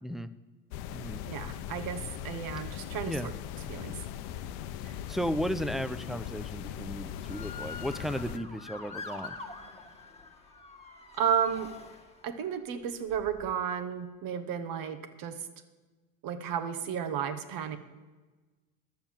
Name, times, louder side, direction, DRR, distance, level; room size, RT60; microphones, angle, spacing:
sound 1, 0.7-8.4, left 10 dB, 60° left, 0.7 m, -39 dB
voice 1, 1.2-3.3 3.7-4.0 11.2-11.7 12.2-15.5 16.2-17.8, right 8 dB, 50° right, 11 dB, 1.3 m, -33 dB
voice 2, 4.8-9.3, equal, ahead, 13 dB, 0.5 m, -35 dB
Motor vehicle (road) / Siren, 7.2-12.5 13.1-13.5, left 4 dB, 15° left, 1.7 m, -45 dB
11.5 x 7.0 x 7.4 m, 1.3 s
hypercardioid pair, 80°, 42 cm